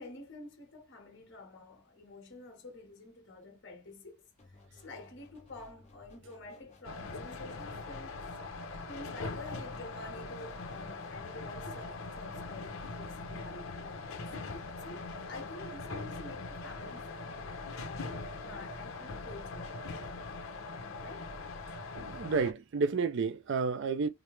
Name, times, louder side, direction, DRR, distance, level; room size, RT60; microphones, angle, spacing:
voice 1, 0.0-4.3 4.7-8.2 8.9-14.3 14.8-18.1 18.4-19.7 20.7-21.3, left 2 dB, 60° left, 1.5 m, -49 dB
sound 1, 4.4-11.2, left 2 dB, 35° left, 1.0 m, -59 dB
sound 2, 6.8-22.5, left 3 dB, 80° left, 0.8 m, -41 dB
voice 2, 22.0-24.1, right 4 dB, 60° right, 0.4 m, -31 dB
4.9 x 2.0 x 3.1 m
head